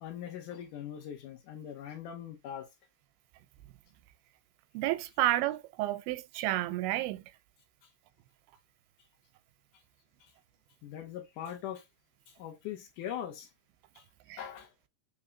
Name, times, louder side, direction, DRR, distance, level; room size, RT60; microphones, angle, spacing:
voice 1, 0.0-2.7 10.8-11.8 12.3-13.5 14.0-14.1 14.4-14.7, left 10 dB, 70° left, 2.2 m, -41 dB
voice 2, 4.7-7.2 14.3-14.4, right 15 dB, 85° right, 2.4 m, -30 dB
5.7 x 3.3 x 2.6 m
omnidirectional pair, 4.3 m